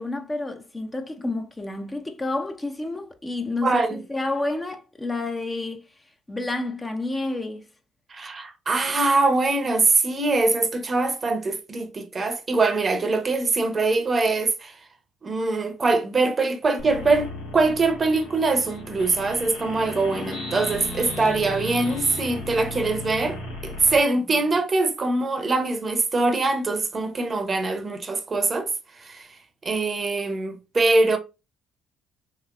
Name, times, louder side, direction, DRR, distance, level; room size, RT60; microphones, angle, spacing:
voice 1, 0.0-5.8 6.3-7.7, left 2 dB, 20° left, 0.6 m, -29 dB
voice 2, 3.6-4.0 8.1-14.8 15.2-28.7 29.0-29.3 29.6-31.2, right 3 dB, 35° right, 0.7 m, -23 dB
sound 1, 16.8-24.0, left 1 dB, 85° left, 1.3 m, -35 dB
3.0 x 2.9 x 2.4 m
supercardioid pair, 65°, 0 cm